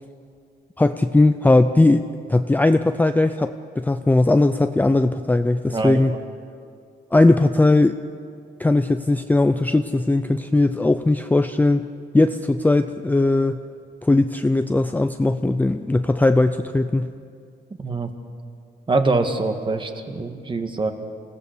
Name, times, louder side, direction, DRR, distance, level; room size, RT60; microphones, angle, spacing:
voice 1, 0.8-2.0 2.3-6.2 7.1-8.0 8.6-11.9 12.1-13.6 14.0-17.1, left 2 dB, 10° left, 8 dB, 0.5 m, -18 dB
voice 2, 5.7-6.0 17.8-18.1 18.9-20.9, right 3 dB, 25° right, 6 dB, 1.6 m, -23 dB
28.0 x 17.0 x 6.7 m, 2.3 s
wide cardioid pair, 150°, 18 cm